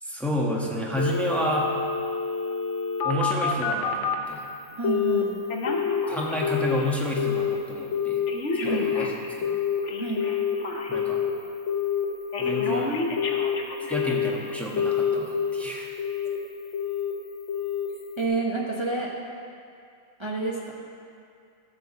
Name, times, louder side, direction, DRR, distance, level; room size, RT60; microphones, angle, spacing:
voice 1, 0.0-1.7 3.0-4.4 6.1-8.2 8.6-9.1 9.4-9.6 10.9-11.2 12.4-13.0 13.9-15.9, equal, ahead, -3 dB, 0.8 m, -30 dB
Telephone, 1.0-4.2 4.8-5.2 5.5-6.9 7.2-7.6 7.9-11.3 11.7-12.1 12.3-14.4 14.8-15.6 16.0-16.4 16.7-17.1 17.5-17.9 18.2-18.3, left 7 dB, 50° left, 1.0 m, -27 dB
voice 2, 4.8-5.4 8.6-8.9 10.0-10.3 18.2-19.1 20.2-20.7, right 3 dB, 25° right, -3 dB, 0.6 m, -28 dB
13.5 x 4.6 x 7.2 m, 2.4 s
omnidirectional pair, 2.1 m